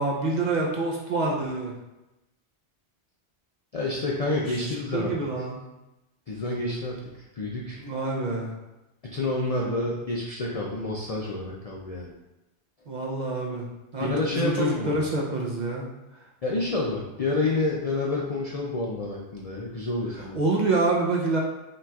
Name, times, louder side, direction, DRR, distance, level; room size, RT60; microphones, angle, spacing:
voice 1, 0.0-1.7 4.2-5.6 7.8-8.6 12.9-13.7 13.9-15.9 20.4-21.4, right 2 dB, 50° right, -2 dB, 0.6 m, -27 dB
voice 2, 3.7-5.1 6.3-7.0 7.3-7.8 9.0-12.1 14.0-15.0 16.4-20.4, left 2 dB, 55° left, -3 dB, 0.4 m, -28 dB
5.8 x 3.0 x 2.3 m, 0.99 s
omnidirectional pair, 1.2 m